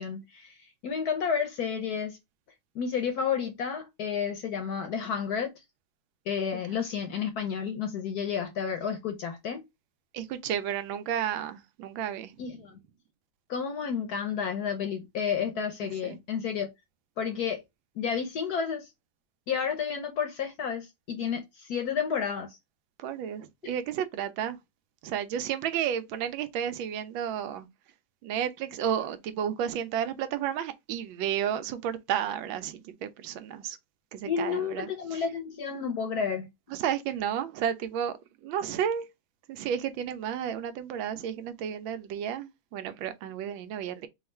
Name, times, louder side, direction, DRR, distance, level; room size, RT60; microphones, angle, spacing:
voice 1, 0.0-2.2 2.7-5.5 6.3-9.6 12.4-12.8 13.5-16.7 17.2-17.6 17.9-18.9 19.5-22.6 34.3-36.5, left 7 dB, 65° left, 1.0 m, -31 dB
voice 2, 10.1-12.4 15.8-16.2 23.0-24.6 25.0-27.7 28.2-33.8 34.1-35.2 36.7-39.1 39.5-44.1, right 9 dB, 80° right, 1.3 m, -32 dB
3.6 x 2.3 x 4.2 m
omnidirectional pair, 2.2 m